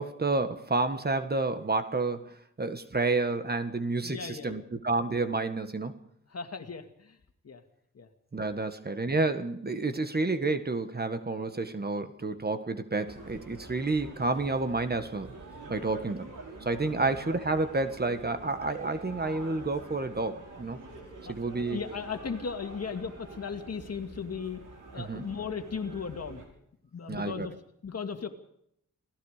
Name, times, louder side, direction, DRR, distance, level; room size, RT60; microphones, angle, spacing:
voice 1, 0.0-6.0 8.3-15.3 15.7-16.3 16.6-20.8 21.3-21.8 25.0-25.2 27.1-27.5, right 3 dB, 30° right, 9 dB, 1.5 m, -30 dB
voice 2, 4.0-4.7 6.3-7.2 7.4-7.6 7.9-8.1 15.7-16.0 21.7-24.6 24.9-26.4 26.9-27.5 27.8-28.3, left 6 dB, 55° left, 6 dB, 2.3 m, -36 dB
sound 1, 13.1-26.4, right 3 dB, 80° right, 5.9 m, -46 dB
28.5 x 18.0 x 5.0 m, 0.73 s
wide cardioid pair, 110°, 31 cm